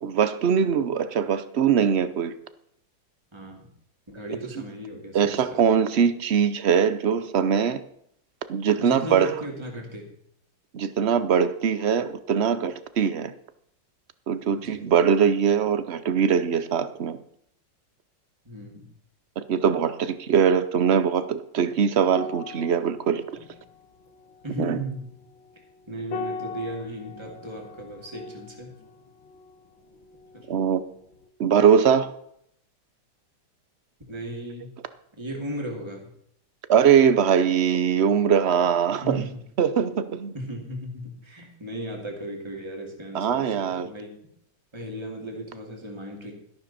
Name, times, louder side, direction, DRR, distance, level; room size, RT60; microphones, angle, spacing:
voice 1, 0.0-2.3 5.1-7.8 8.5-9.3 10.7-13.3 14.3-17.2 19.4-23.2 24.6-24.8 30.5-30.8 31.4-32.1 36.7-39.2 39.6-40.3 43.1-43.9, right 7 dB, 55° right, 0.7 m, -22 dB
voice 2, 3.3-3.7 4.1-5.6 8.8-10.1 14.5-14.9 18.4-18.9 24.4-25.1 25.9-28.7 30.3-30.5 34.1-34.7 35.2-36.1 39.0-39.4 40.3-44.1 44.7-46.3, right 1 dB, 15° right, 2.7 m, -36 dB
sound 1, 22.1-30.8 31.1-31.3, left 4 dB, 80° left, 1.7 m, -41 dB
13.0 x 11.5 x 4.3 m
omnidirectional pair, 2.0 m